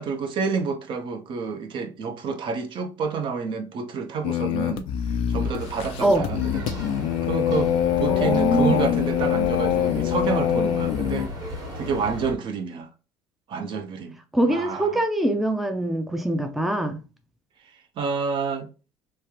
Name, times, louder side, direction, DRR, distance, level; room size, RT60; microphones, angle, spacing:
voice 1, 0.0-4.9 5.3-6.8 7.2-7.7 8.0-11.3 11.7-12.9 13.5-14.2 14.5-14.9 18.0-18.7, right 5 dB, 50° right, 0.6 m, -28 dB
sound 1, 4.2-11.3, left 11 dB, 65° left, 0.4 m, -24 dB
sound 2, 5.4-12.3, left 1 dB, 35° right, 1.4 m, -35 dB
voice 2, 8.1-8.9 14.3-17.0, right 1 dB, ahead, 0.4 m, -23 dB
3.2 x 2.4 x 2.8 m
supercardioid pair, 95°, 11 cm